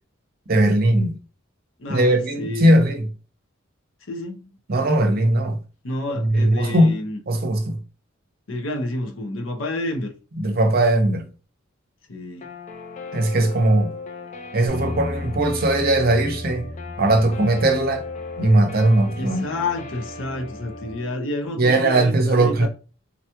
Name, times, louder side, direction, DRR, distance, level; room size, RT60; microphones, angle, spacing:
voice 1, 0.5-1.2 1.9-3.1 4.7-5.6 6.1-7.8 10.4-11.2 13.1-13.9 14.5-16.7 17.0-18.0 18.4-19.4 21.6-22.7, right 1 dB, 50° right, 0.6 m, -19 dB
voice 2, 1.8-2.7 4.1-4.4 5.8-7.2 8.5-10.1 12.1-12.5 19.2-22.7, left 2 dB, 75° left, 0.7 m, -29 dB
Guitar, 12.4-21.1, left 3 dB, 35° left, 0.4 m, -37 dB
sound 1, 14.7-20.9, left 2 dB, 5° left, 1.0 m, -36 dB
3.9 x 2.3 x 2.9 m
head